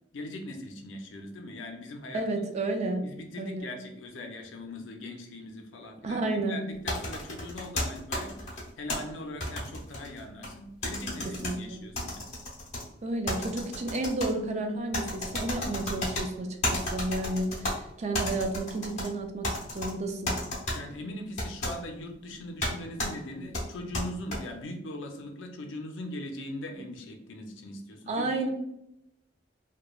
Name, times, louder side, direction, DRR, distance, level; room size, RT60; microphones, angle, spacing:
voice 1, 0.1-2.2 3.0-12.3 20.7-28.5, left 1 dB, 80° left, 3 dB, 0.5 m, -40 dB
voice 2, 2.1-3.0 3.4-3.7 6.0-6.7 11.4-11.8 13.0-20.3 28.1-28.5, right 2 dB, 35° right, 4 dB, 0.3 m, -31 dB
sound 1, 6.9-9.0 9.4-10.5 10.8-11.5 12.0-12.8 13.3-14.3 14.9-16.2 16.6-17.7 18.1-19.1 19.4-19.9 20.3-20.8 21.4-21.7 22.6-22.7 23.0-23.1 23.5-24.4, left 1 dB, 40° left, 0.8 m, -32 dB
3.0 x 2.2 x 2.3 m, 0.83 s
head